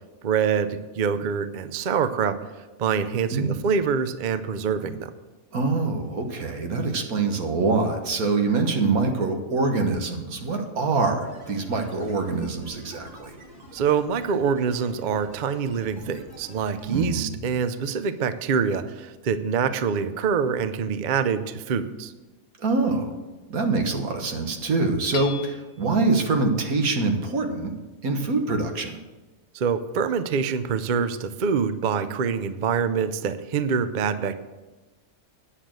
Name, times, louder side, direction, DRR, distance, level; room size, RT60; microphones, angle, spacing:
voice 1, 0.2-2.4 2.8-5.1 13.7-22.1 29.5-34.4, right 6 dB, 55° right, 11 dB, 0.5 m, -25 dB
voice 2, 5.5-13.3 16.9-17.3 22.6-23.1 23.5-27.7 28.0-29.0, right 3 dB, 80° right, 4 dB, 1.7 m, -24 dB
sound 1, 11.2-17.1, right 1 dB, 30° right, 2.3 m, -47 dB
Hammer / Chink clink, 25.1-25.9, left 6 dB, 60° left, 1.1 m, -37 dB
9.9 x 6.6 x 7.5 m, 1.2 s
omnidirectional pair, 1.5 m